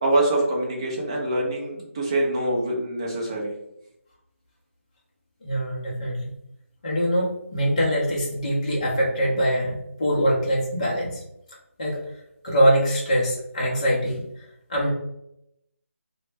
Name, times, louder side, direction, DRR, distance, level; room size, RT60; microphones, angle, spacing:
voice 1, 0.0-3.5, right 1 dB, 20° right, -3 dB, 0.4 m, -24 dB
voice 2, 5.4-6.2 6.8-11.2 11.8-12.0 12.4-14.2 14.7-14.9, equal, 25° left, -5 dB, 0.5 m, -23 dB
2.1 x 2.0 x 3.1 m, 0.81 s
figure-of-eight pair, 170°, 8 cm